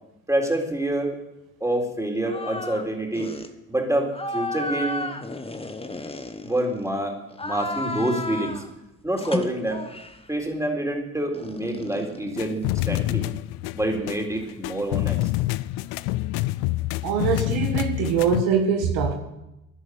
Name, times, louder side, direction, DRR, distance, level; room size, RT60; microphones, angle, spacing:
voice 1, 0.3-1.2 1.6-3.3 3.7-5.1 6.4-7.1 7.4-8.6 9.0-9.9 10.3-13.2 13.7-15.3, right 1 dB, 10° right, 1 dB, 4.0 m, -27 dB
sound 1, 2.2-2.9 3.1-3.5 4.1-6.9 7.3-8.7 9.2-10.2 11.3-13.1, left 2 dB, 15° left, 1.6 m, -33 dB
sound 2, 12.4-18.4, left 18 dB, 75° left, 0.5 m, -27 dB
voice 2, 17.0-19.1, right 7 dB, 80° right, 4 dB, 1.7 m, -23 dB
11.0 x 11.0 x 8.2 m, 0.91 s
hypercardioid pair, 55°, 37 cm